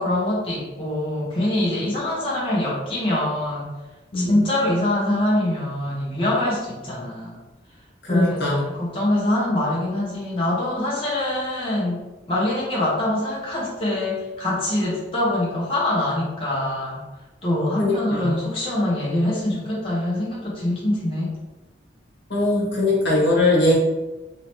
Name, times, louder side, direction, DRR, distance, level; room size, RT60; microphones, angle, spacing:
voice 1, 0.0-3.7 4.1-7.4 8.1-17.0 17.4-21.3, left 1 dB, 30° left, -7 dB, 0.7 m, -24 dB
voice 2, 4.1-4.4 8.0-8.6 17.8-18.3 22.3-23.7, left 2 dB, 65° left, -5 dB, 1.1 m, -20 dB
3.1 x 2.7 x 3.0 m, 1.1 s
head